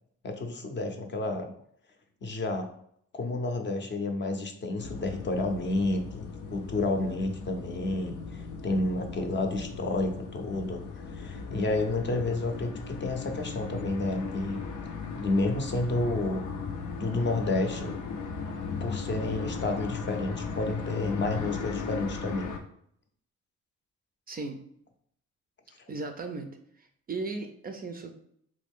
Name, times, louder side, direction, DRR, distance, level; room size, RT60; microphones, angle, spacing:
voice 1, 0.2-1.5 2.2-2.7 3.1-14.6 15.1-16.4 17.0-18.0 18.8-22.5, left 2 dB, 40° left, 5 dB, 0.6 m, -30 dB
sound 1, 4.8-22.6, left 5 dB, 90° left, 0.5 m, -37 dB
voice 2, 24.3-24.6 25.9-28.1, right 3 dB, 30° right, 5 dB, 0.4 m, -37 dB
3.1 x 2.5 x 3.5 m, 0.67 s
cardioid pair, 90°, 30 cm